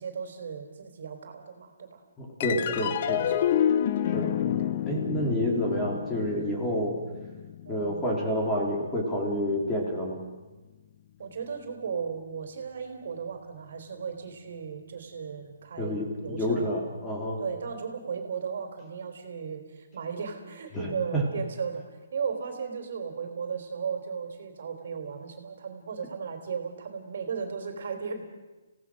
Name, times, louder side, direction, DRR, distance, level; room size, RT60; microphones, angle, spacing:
voice 1, 0.0-2.0 2.5-3.5 4.0-4.3 7.6-8.0 11.2-16.7 17.4-21.8 22.1-28.2, right 6 dB, 55° right, 6 dB, 3.5 m, -36 dB
voice 2, 2.2-3.2 4.1-4.4 4.9-7.0 7.7-10.2 15.8-17.4 20.7-21.2, equal, 10° left, -1 dB, 3.6 m, -29 dB
sound 1, 2.4-9.1, left 10 dB, 35° left, 0.8 m, -29 dB
26.5 x 17.5 x 6.4 m, 1.2 s
hypercardioid pair, 165°, 0 cm